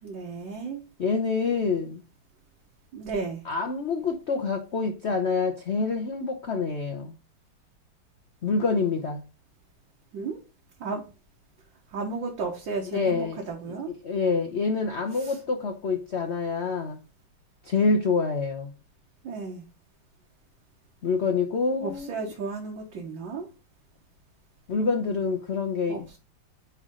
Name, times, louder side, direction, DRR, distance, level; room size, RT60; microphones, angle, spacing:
voice 1, 0.0-0.8 2.9-3.4 10.1-10.4 10.8-11.1 11.9-13.9 15.2-15.3 19.2-19.7 21.8-23.5 25.9-26.0, right 4 dB, 65° right, 1.8 m, -33 dB
voice 2, 1.0-2.0 3.4-7.1 8.4-9.2 12.9-13.4 13.7-17.0 17.6-18.7 21.0-22.2 24.7-26.2, left 4 dB, 90° left, 0.6 m, -27 dB
9.5 x 3.2 x 3.7 m
omnidirectional pair, 2.3 m